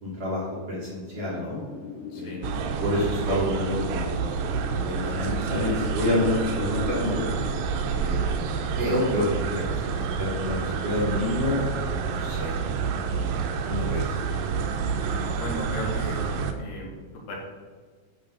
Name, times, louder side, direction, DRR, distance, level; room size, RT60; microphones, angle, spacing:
voice 1, 0.0-1.6 2.1-2.5 2.8-4.3 4.7-7.2 7.9-9.9 10.2-12.5 13.1-13.4 13.7-14.2, left 1 dB, 50° right, -7 dB, 2.0 m, -28 dB
Wind, 1.1-9.8, left 5 dB, 50° left, 0.8 m, -40 dB
sound 1, 2.4-16.5, right 6 dB, 85° right, 2.0 m, -28 dB
voice 2, 15.1-16.2 16.6-16.9 17.3-17.4, equal, 75° left, -2 dB, 3.6 m, -35 dB
11.0 x 3.8 x 5.3 m, 1.5 s
omnidirectional pair, 4.9 m